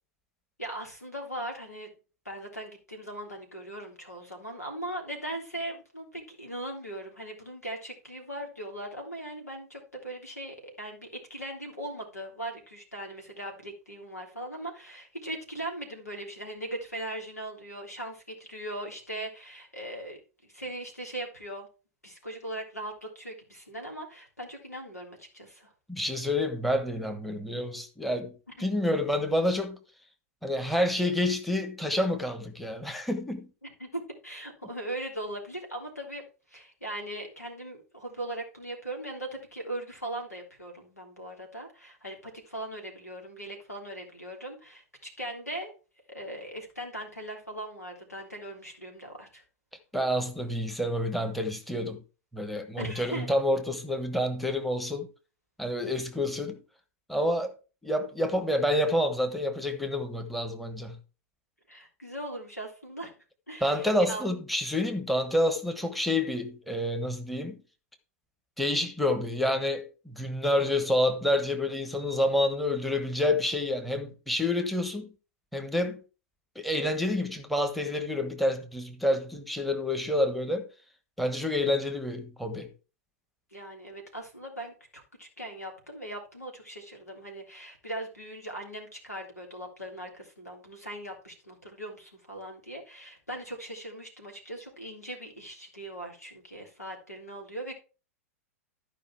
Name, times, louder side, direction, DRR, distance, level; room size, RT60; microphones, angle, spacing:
voice 1, 0.6-1.9 2.2-21.7 22.0-25.7 28.6-28.7 33.8-36.2 36.5-45.7 46.1-49.4 52.8-53.3 61.7-63.1 63.5-64.2 83.5-97.7, right 1 dB, 90° left, 3.4 m, -39 dB
voice 2, 25.9-29.8 30.4-33.5 49.9-52.0 52.3-55.1 55.6-56.6 57.1-57.5 57.8-61.0 63.6-67.6 68.6-75.1 75.5-76.0 76.5-80.7 81.2-82.7, left 1 dB, ahead, 1.2 m, -28 dB
13.0 x 5.2 x 4.6 m
figure-of-eight pair, 100°, 8 cm